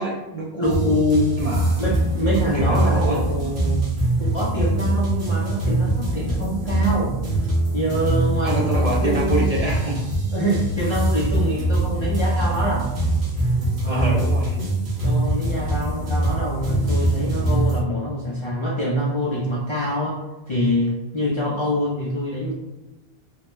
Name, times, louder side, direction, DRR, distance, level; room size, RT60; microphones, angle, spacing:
voice 1, 0.0-0.8 1.4-1.8 2.4-3.2 8.4-10.1 13.9-14.6, right 1 dB, 50° right, -4 dB, 0.5 m, -25 dB
voice 2, 0.6-1.4 1.8-3.9 4.2-7.2 7.7-9.5 10.3-12.9 13.8-14.2 15.0-20.2 20.5-22.5, equal, 45° left, -5 dB, 0.3 m, -25 dB
sound 1, 0.6-17.8, right 1 dB, 85° right, 1.2 m, -23 dB
2.9 x 2.1 x 3.0 m, 1.0 s
omnidirectional pair, 1.1 m